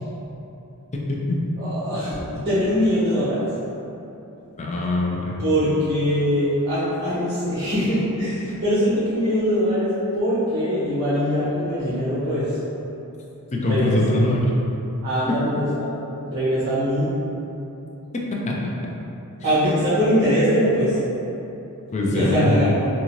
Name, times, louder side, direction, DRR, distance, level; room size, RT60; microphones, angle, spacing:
voice 1, 1.6-3.5 5.4-12.6 13.6-14.2 15.0-16.0 16.3-17.1 19.4-21.0 22.0-22.7, equal, 50° right, -14 dB, 1.3 m, -22 dB
voice 2, 4.6-5.4 13.5-14.5 15.3-15.4 18.5-18.6 21.9-22.5, left 1 dB, 30° left, -3 dB, 0.5 m, -22 dB
3.7 x 2.7 x 3.0 m, 2.9 s
head